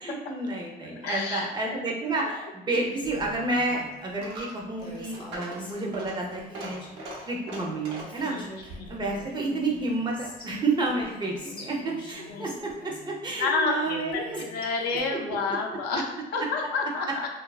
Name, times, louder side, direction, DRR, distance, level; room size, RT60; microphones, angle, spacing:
voice 1, 0.0-6.8 7.3-8.4 8.6-14.4 15.1-15.4, right 2 dB, 25° right, 0 dB, 0.5 m, -30 dB
voice 2, 1.0-1.8 2.2-2.4 2.7-2.8 5.4-5.6 8.3-8.5 8.8-8.9 12.3-12.5 13.4-17.3, left 4 dB, 75° left, 2 dB, 0.5 m, -30 dB
Female speech woman speaking, 2.7-3.9 4.8-7.1 7.7-7.8 8.0-10.5 10.9-13.3 13.8-15.0, left 1 dB, 25° left, 0.6 m, -45 dB
Coin (dropping), 3.0-10.5, right 1 dB, 80° right, 0.7 m, -43 dB
2.7 x 2.3 x 2.3 m, 1.1 s
cardioid pair, 110°, 17 cm